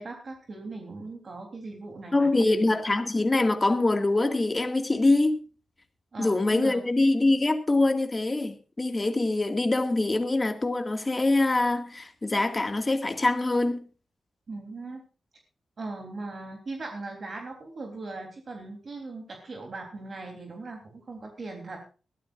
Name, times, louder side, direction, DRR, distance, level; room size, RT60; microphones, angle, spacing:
voice 1, 0.0-2.6 6.1-6.8 14.5-15.0 15.8-21.8, right 3 dB, 45° right, 3.3 m, -39 dB
voice 2, 2.1-5.4 6.2-13.9, left 2 dB, 20° left, 1.9 m, -24 dB
21.5 x 13.5 x 2.5 m
wide cardioid pair, 130°, 0 cm